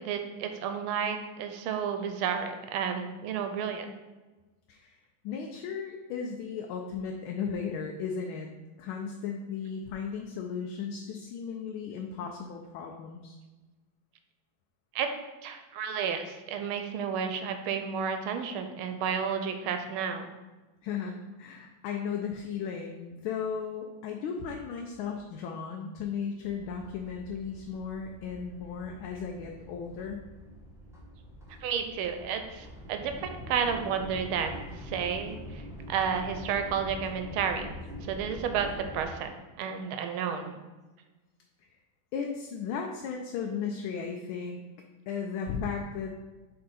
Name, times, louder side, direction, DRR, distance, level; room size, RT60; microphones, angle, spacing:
voice 1, 0.0-3.9 14.9-15.1 15.4-20.3 31.6-37.7 38.1-38.7 38.9-39.3 39.6-40.6, right 7 dB, 85° right, 6 dB, 1.5 m, -31 dB
voice 2, 5.2-8.5 8.8-13.4 20.8-30.2 42.1-44.6 45.1-46.1, left 6 dB, 80° left, 2 dB, 1.4 m, -35 dB
sound 1, 26.4-39.0, left 1 dB, 5° right, 0.4 m, -44 dB
6.8 x 3.6 x 4.1 m, 1.2 s
omnidirectional pair, 2.3 m